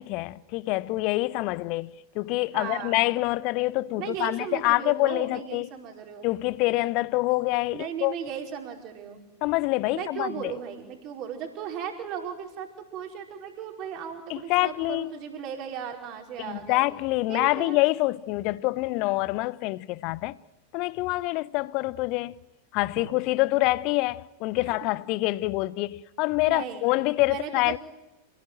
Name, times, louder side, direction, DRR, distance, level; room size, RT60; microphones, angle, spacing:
voice 1, 0.0-5.7 6.2-8.1 9.4-10.5 14.3-15.1 16.4-20.4 20.7-22.3 22.7-27.8, left 20 dB, 40° left, 0.8 m, -26 dB
voice 2, 2.5-3.0 4.0-6.3 7.7-9.2 9.9-16.9 17.3-17.8 23.0-23.1 24.6-24.8 26.5-26.8 27.3-27.8, right 8 dB, 40° right, 5.1 m, -36 dB
28.0 x 19.5 x 9.2 m
figure-of-eight pair, 90°, 0 cm